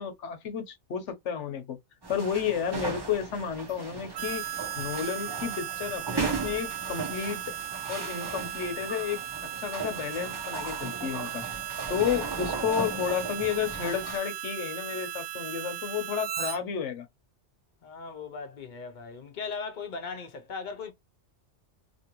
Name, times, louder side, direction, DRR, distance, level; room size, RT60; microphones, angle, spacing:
voice 1, 0.0-1.8 2.1-4.4 4.8-7.4 7.9-9.2 9.6-11.4 11.9-17.1, left 8 dB, 80° left, 1.1 m, -31 dB
sound 1, 2.0-14.2, right 4 dB, 25° right, 0.6 m, -37 dB
Harmonica, 4.1-16.6, right 11 dB, 90° right, 0.9 m, -37 dB
voice 2, 11.9-12.2 17.8-20.9, left 5 dB, 50° left, 0.7 m, -38 dB
2.8 x 2.6 x 2.9 m
omnidirectional pair, 1.2 m